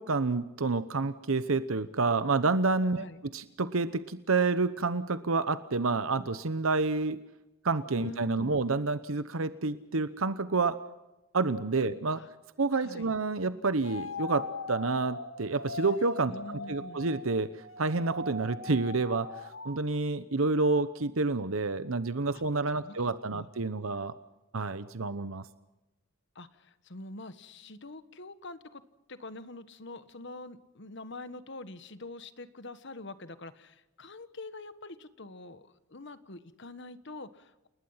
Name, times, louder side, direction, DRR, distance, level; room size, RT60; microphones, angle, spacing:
voice 1, 0.0-3.1 3.3-7.2 7.6-10.8 11.3-12.2 12.6-16.3 16.7-17.5 17.8-24.1 24.5-25.4, right 3 dB, 75° right, 13 dB, 0.9 m, -29 dB
voice 2, 8.0-8.6 12.2-12.3 12.8-13.1 16.3-17.0 22.3-22.4 22.8-23.5 26.3-28.8 29.1-37.7, left 2 dB, 55° left, 12 dB, 1.4 m, -45 dB
sound 1, 13.8-19.8, left 3 dB, 80° left, 2.0 m, -40 dB
29.5 x 20.0 x 5.8 m, 0.99 s
head